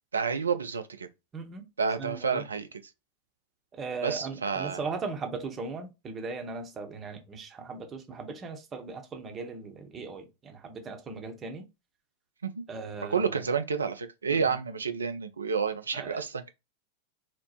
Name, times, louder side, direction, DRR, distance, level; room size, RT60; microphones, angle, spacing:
voice 1, 0.1-1.1 1.8-2.7 4.0-4.8 12.4-12.6 13.0-16.5, right 5 dB, 75° right, 0.4 m, -29 dB
voice 2, 1.3-1.7 2.0-2.5 3.7-11.7 12.7-13.5 14.3-14.6 15.9-16.2, right 4 dB, 25° right, 0.8 m, -38 dB
2.9 x 2.1 x 4.0 m
figure-of-eight pair, 90°, 0 cm